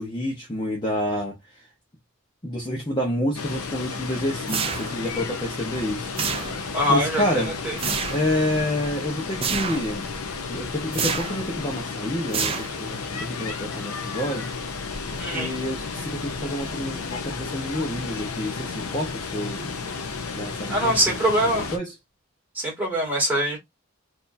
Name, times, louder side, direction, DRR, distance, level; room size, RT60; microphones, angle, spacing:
voice 1, 0.0-1.6 2.4-7.5 8.1-10.1 10.4-14.5 15.1-19.7 20.3-21.2 21.5-21.9, left 1 dB, 20° left, 0.9 m, -29 dB
Water, 3.3-21.8, left 4 dB, 85° left, 0.7 m, -33 dB
sound 1, 4.5-5.2 6.2-6.8 7.8-8.3 9.4-9.9 10.9-11.5 12.3-13.0, right 6 dB, 25° right, 0.4 m, -28 dB
voice 2, 6.7-7.8 15.2-15.5 20.7-21.7 22.5-23.6, equal, 10° right, 2.1 m, -23 dB
4.2 x 2.8 x 2.6 m
head